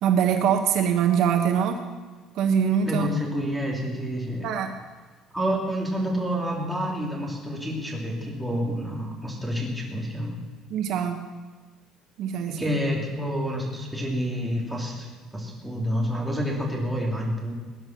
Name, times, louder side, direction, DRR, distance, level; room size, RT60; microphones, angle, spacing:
voice 1, 0.0-1.8 2.3-3.1 4.4-4.7 10.7-11.2 12.2-12.6, right 8 dB, 55° right, 6 dB, 1.2 m, -23 dB
voice 2, 2.9-4.5 5.3-10.4 12.5-15.1 15.3-17.5, equal, ahead, -1 dB, 2.8 m, -28 dB
20.0 x 10.0 x 6.0 m, 1.4 s
cardioid pair, 170°, 0 cm